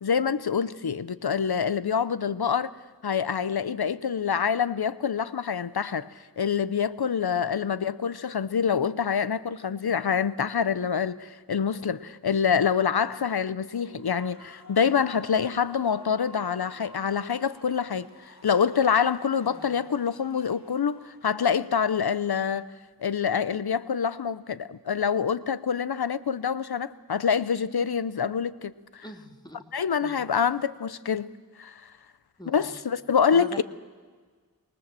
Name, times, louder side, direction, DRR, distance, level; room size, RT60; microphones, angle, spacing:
voice 1, 0.0-2.7 3.0-6.1 6.4-18.1 18.4-22.7 23.0-29.0 29.7-31.3 31.6-31.8 32.5-33.6, left 7 dB, 85° left, 0.7 m, -26 dB
Human voice / Cheering / Applause, 13.6-21.3, left 1 dB, 50° left, 4.8 m, -51 dB
voice 2, 19.5-19.9 29.0-29.6 30.0-30.3 32.4-32.8 33.3-33.6, equal, 10° left, 2.3 m, -44 dB
23.5 x 19.5 x 7.6 m
wide cardioid pair, 45°, 37 cm